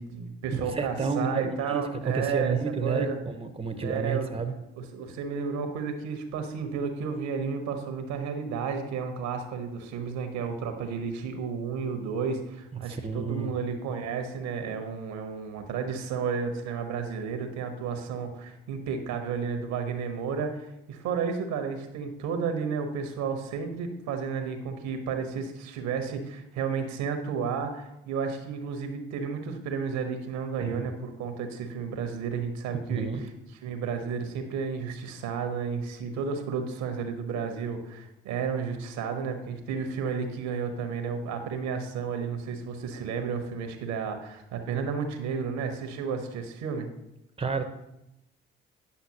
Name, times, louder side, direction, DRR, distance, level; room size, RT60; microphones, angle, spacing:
voice 1, 0.0-3.2 3.8-4.4 4.8-33.3 33.6-46.9, right 6 dB, 70° right, 6 dB, 1.0 m, -32 dB
voice 2, 0.7-4.5 12.8-13.5 30.6-30.9 32.9-33.3 47.4-47.6, right 4 dB, 20° right, 8 dB, 0.9 m, -30 dB
9.5 x 5.7 x 2.9 m, 0.87 s
hypercardioid pair, 50°, 29 cm